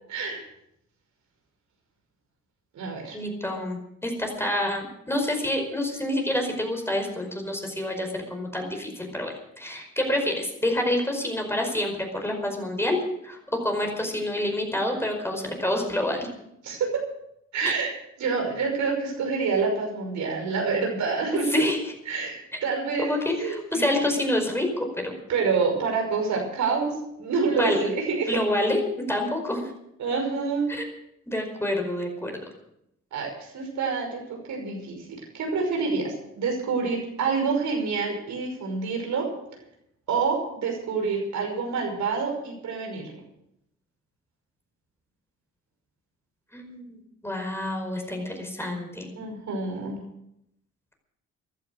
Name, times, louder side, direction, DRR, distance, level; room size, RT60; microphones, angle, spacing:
voice 1, 0.1-0.4 2.7-3.2 16.6-16.9 17.5-21.6 22.1-23.1 23.4-24.2 25.3-28.4 30.0-30.7 33.1-39.3 40.1-43.2 49.2-50.0, right 4 dB, 70° right, 2 dB, 5.7 m, -27 dB
voice 2, 3.1-16.3 17.6-17.7 21.5-21.8 23.0-25.2 27.6-27.8 28.3-29.7 30.7-30.8 31.3-32.4 46.5-46.9 47.2-49.1, left 1 dB, 10° left, 3 dB, 5.0 m, -27 dB
15.5 x 11.5 x 6.5 m, 0.79 s
cardioid pair, 90°, 30 cm